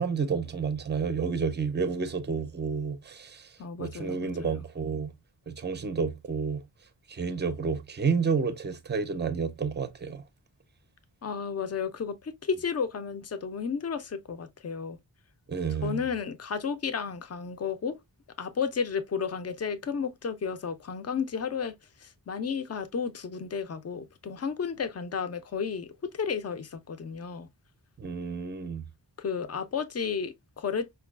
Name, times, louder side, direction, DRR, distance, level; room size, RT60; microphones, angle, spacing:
voice 1, 0.0-3.5 3.8-5.1 5.5-6.6 7.1-10.2 15.5-16.0 28.0-28.8, right 5 dB, 25° right, 0.5 m, -30 dB
voice 2, 3.6-4.6 11.2-15.0 15.8-18.0 18.4-21.7 22.0-27.5 29.2-30.9, left 6 dB, 40° left, 0.5 m, -32 dB
5.1 x 2.3 x 2.3 m
wide cardioid pair, 125°, 42 cm